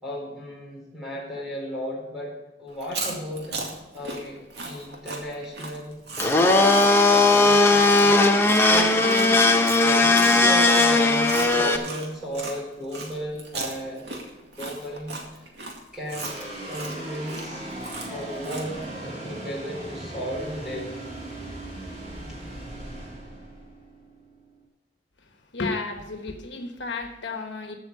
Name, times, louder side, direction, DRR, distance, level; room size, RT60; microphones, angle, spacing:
voice 1, 0.0-2.3 2.6-4.4 4.7-6.0 6.3-8.1 8.4-14.1 14.6-15.2 15.9-16.4 16.6-17.7 18.1-21.0, equal, 5° right, -4 dB, 4.3 m, -34 dB
Chewing mastication, 2.7-12.6 12.9-18.8, right 3 dB, 70° right, 2.2 m, -36 dB
Domestic sounds home sounds, 6.2-11.8, left 2 dB, 15° left, 0.9 m, -18 dB
sound 1, 16.1-24.6, right 1 dB, 40° right, 3.6 m, -38 dB
voice 2, 25.5-27.7, left 3 dB, 85° left, 5 dB, 1.2 m, -32 dB
14.5 x 6.1 x 5.5 m, 1.0 s
head